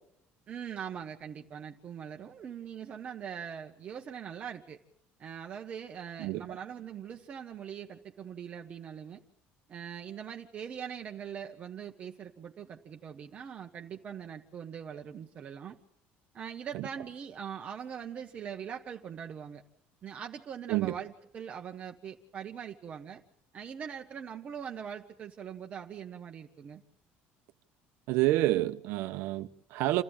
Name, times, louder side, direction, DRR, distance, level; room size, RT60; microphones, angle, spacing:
voice 1, 0.5-4.8 5.2-9.2 9.7-15.8 16.3-19.6 20.0-23.2 23.5-26.8, right 8 dB, 35° right, 1.2 m, -42 dB
voice 2, 28.1-30.0, right 16 dB, 75° right, 1.1 m, -28 dB
28.5 x 14.5 x 8.9 m
cardioid pair, 160°, 4 cm